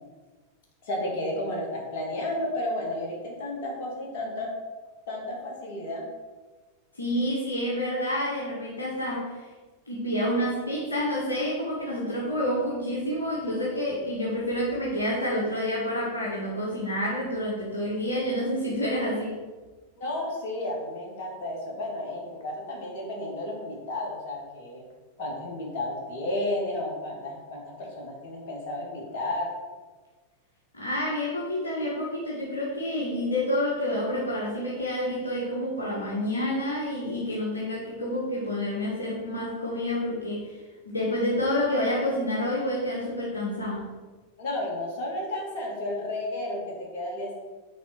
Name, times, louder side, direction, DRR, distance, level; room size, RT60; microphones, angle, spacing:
voice 1, 0.8-4.5 5.1-6.1 20.0-24.8 25.2-29.5 44.4-47.3, left 1 dB, 50° left, -2 dB, 2.2 m, -32 dB
voice 2, 6.9-9.4 9.9-19.4 30.7-40.6 40.8-43.9, left 1 dB, 75° left, -5 dB, 1.4 m, -28 dB
5.9 x 4.3 x 5.9 m, 1.3 s
figure-of-eight pair, 90°, 0 cm